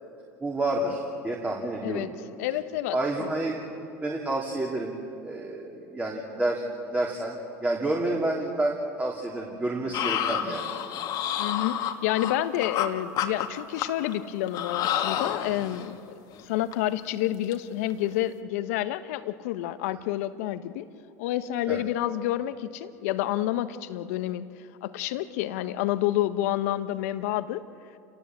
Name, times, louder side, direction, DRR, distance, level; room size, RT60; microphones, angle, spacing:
voice 1, 0.4-2.1 2.9-3.6 4.0-5.0 5.2-10.8 21.7-21.8, right 2 dB, 20° right, -2 dB, 3.3 m, -29 dB
voice 2, 1.8-2.1 2.4-3.3 11.4-15.9 16.5-20.9 21.2-24.5 24.8-27.6, left 13 dB, 70° left, 12 dB, 1.1 m, -29 dB
sound 1, 9.9-12.9 13.2-14.1 14.5-15.9 16.3-16.4 16.7-16.9 17.2-17.5 17.9-18.1, left 10 dB, 55° left, 1.8 m, -29 dB
29.0 x 18.5 x 7.7 m, 2.6 s
hypercardioid pair, 85°, 8 cm